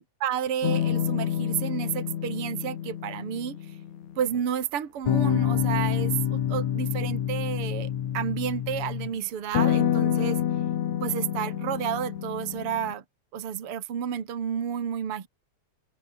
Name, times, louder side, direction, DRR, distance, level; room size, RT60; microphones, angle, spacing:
voice 1, 0.0-3.6 4.2-10.4 11.0-13.0 13.3-15.3, right 9 dB, 50° right, 2.9 m, -31 dB
sound 1, 0.6-4.4 5.1-9.1 9.5-12.9, left 10 dB, 70° left, 3.0 m, -27 dB
open air
omnidirectional pair, 3.4 m